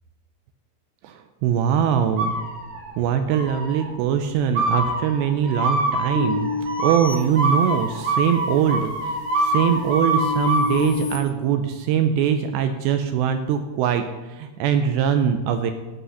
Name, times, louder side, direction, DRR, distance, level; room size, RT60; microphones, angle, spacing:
voice 1, 1.0-2.4 3.0-14.0 14.3-15.7, right 8 dB, 85° right, 7 dB, 2.6 m, -22 dB
sound 1, 2.2-2.9 3.3-3.9 4.5-10.9, right 1 dB, 60° right, 1.6 m, -25 dB
sound 2, 6.2-8.1 8.6-11.2, left 5 dB, 60° left, 1.5 m, -30 dB
14.5 x 8.3 x 5.6 m, 1.2 s
omnidirectional pair, 5.4 m